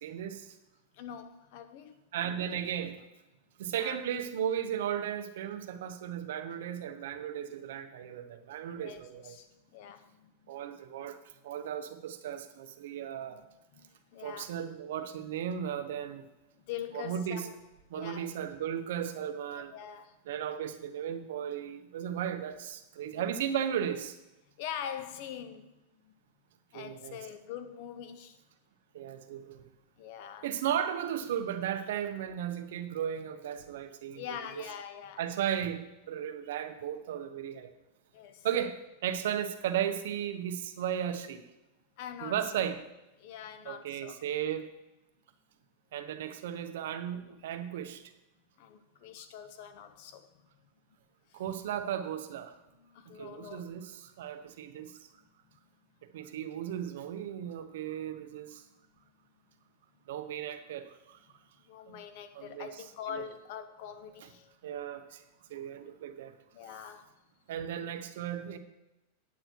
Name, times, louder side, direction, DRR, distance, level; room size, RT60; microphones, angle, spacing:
voice 1, 0.0-0.6 2.1-3.0 3.6-9.4 10.5-11.2 11.4-13.4 14.2-16.3 16.9-17.5 17.9-19.7 20.3-24.2 26.7-27.2 28.9-29.7 30.4-34.2 34.6-34.7 35.2-37.7 38.4-41.5 42.2-42.8 43.6-44.7 45.9-48.0 51.3-52.6 53.1-55.0 56.1-58.6 60.1-61.2 61.9-62.0 62.3-62.7 64.6-65.2 65.5-66.3 67.5-68.6, right 9 dB, 75° right, 1.0 m, -35 dB
voice 2, 0.9-2.0 3.8-4.0 8.7-10.5 13.3-13.5 13.7-14.5 16.7-17.5 17.9-18.3 19.6-20.1 23.1-23.2 24.6-25.7 26.1-26.2 26.7-28.4 30.0-30.5 34.1-35.3 38.1-38.5 42.0-42.7 43.2-44.2 48.6-50.3 51.3-51.4 52.8-53.7 55.1-55.3 61.7-64.6 66.5-67.1, left 9 dB, 55° left, 1.0 m, -44 dB
9.2 x 8.8 x 4.6 m
supercardioid pair, 140°, 0 cm